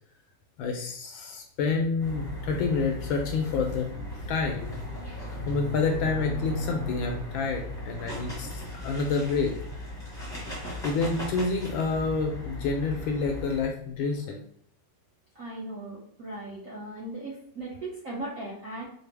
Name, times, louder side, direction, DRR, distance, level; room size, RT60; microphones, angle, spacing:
voice 1, 0.6-3.9 4.3-4.8 5.1-9.5 10.8-14.4, left 4 dB, 75° left, 3 dB, 1.3 m, -28 dB
sound 1, 2.0-13.6, left 1 dB, 5° left, 0.7 m, -36 dB
voice 2, 15.3-18.9, right 2 dB, 60° right, -5 dB, 0.8 m, -38 dB
4.9 x 2.0 x 3.3 m, 0.66 s
omnidirectional pair, 2.4 m